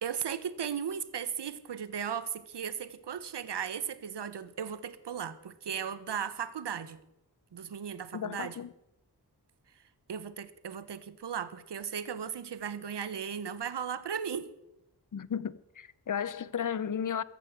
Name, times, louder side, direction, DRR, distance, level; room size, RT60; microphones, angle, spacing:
voice 1, 0.0-7.0 7.5-8.6 10.1-14.5, right 7 dB, 90° right, 1.0 m, -36 dB
voice 2, 8.1-8.7 15.1-17.2, left 8 dB, 50° left, 0.7 m, -34 dB
15.0 x 10.5 x 7.8 m
wide cardioid pair, 85°, 40 cm